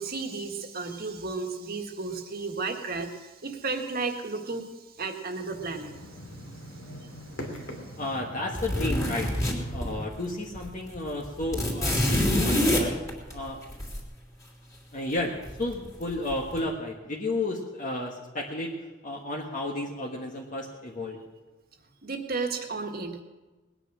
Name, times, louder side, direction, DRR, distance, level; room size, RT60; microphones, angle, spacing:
voice 1, 0.0-5.9 22.0-23.2, right 4 dB, 50° right, 4 dB, 1.7 m, -33 dB
sound 1, 5.4-10.1, equal, 85° left, 2.9 m, -42 dB
voice 2, 8.0-9.3 9.7-13.0 13.3-13.6 14.9-18.7 19.0-21.2, left 2 dB, 45° left, -1 dB, 1.5 m, -32 dB
sound 2, 8.5-10.3 10.6-10.7 10.9-14.0 15.4-16.0 16.3-16.6, left 1 dB, 15° left, 3.2 m, -26 dB
20.0 x 9.9 x 6.1 m, 1.2 s
head